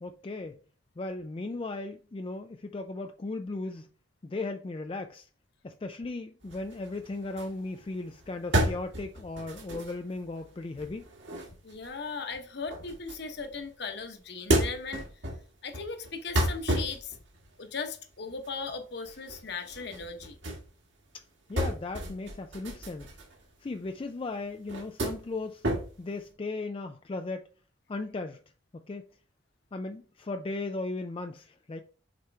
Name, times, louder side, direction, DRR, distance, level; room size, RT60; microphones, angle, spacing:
voice 1, 0.0-0.6 1.0-3.9 4.2-5.3 5.6-11.1 21.1-21.2 21.5-23.1 23.6-25.7 26.0-27.5 27.9-28.4 28.7-29.0 29.7-31.8, left 2 dB, 25° left, 0.3 m, -36 dB
sound 1, 6.4-13.7 14.1-20.7 20.9-24.0 24.4-26.3, right 1 dB, 70° right, 1.9 m, -33 dB
voice 2, 11.6-15.1 15.6-17.2 17.6-20.4, left 4 dB, 60° left, 1.0 m, -38 dB
6.6 x 4.4 x 3.4 m
head